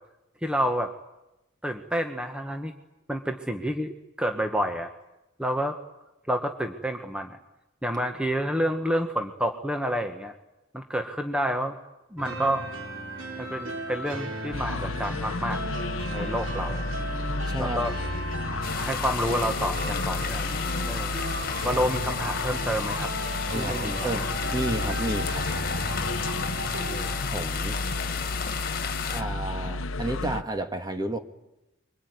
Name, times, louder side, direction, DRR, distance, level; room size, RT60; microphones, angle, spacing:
voice 1, 0.4-0.9 1.6-2.7 3.1-4.9 5.4-5.8 6.3-7.4 7.8-10.3 10.7-11.8 12.1-12.6 13.4-15.6 16.1-16.8 17.6-17.9 18.8-20.5 20.9-21.1 21.6-23.1 23.5-24.1 25.0-25.2 26.7-27.1, equal, 5° right, 5 dB, 1.4 m, -29 dB
sound 1, 12.2-27.2, equal, 75° right, 4.1 m, -35 dB
sound 2, 14.5-30.4, left 2 dB, 80° left, 0.9 m, -32 dB
voice 2, 17.5-17.8 23.5-24.3 24.5-25.3 27.3-27.8 29.1-31.2, right 1 dB, 20° right, 7 dB, 1.7 m, -31 dB
sound 3, 18.6-29.2, left 7 dB, 50° left, 1.9 m, -34 dB
25.0 x 24.0 x 9.6 m, 0.96 s
head